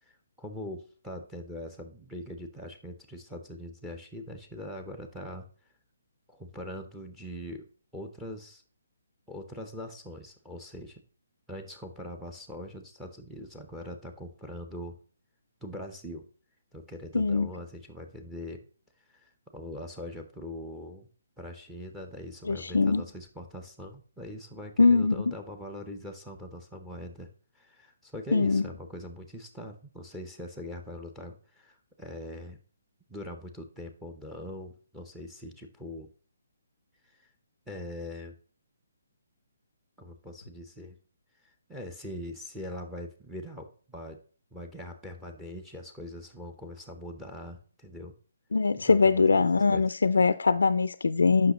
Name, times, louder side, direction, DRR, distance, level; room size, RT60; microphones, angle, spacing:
voice 1, 0.0-5.5 6.3-8.6 9.3-11.0 11.5-15.0 15.6-16.3 16.7-18.6 19.1-21.1 21.4-27.3 27.5-32.6 33.1-36.1 37.0-37.3 37.7-38.3 40.0-41.0 41.4-44.2 44.5-48.1 48.7-49.8 51.2-51.5, left 1 dB, 5° right, 0.8 m, -42 dB
voice 2, 17.1-17.5 22.4-23.0 24.8-25.3 28.3-28.6 48.5-51.5, left 4 dB, 85° left, 0.4 m, -22 dB
7.9 x 5.8 x 2.9 m
hypercardioid pair, 155°, 0 cm